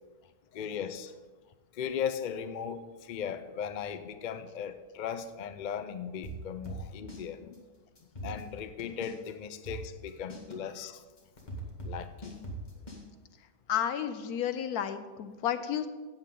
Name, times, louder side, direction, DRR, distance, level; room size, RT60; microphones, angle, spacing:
voice 1, 0.5-1.1 1.7-7.7 8.2-11.0 11.8-12.4, left 8 dB, 70° left, 10 dB, 0.4 m, -37 dB
sound 1, 6.2-7.2 7.5-7.6 8.0-9.3 9.6-13.0, right 2 dB, 30° left, 2.0 m, -40 dB
voice 2, 13.7-15.9, left 9 dB, 90° left, 10 dB, 1.3 m, -31 dB
14.5 x 8.5 x 3.8 m, 1.4 s
omnidirectional pair, 1.5 m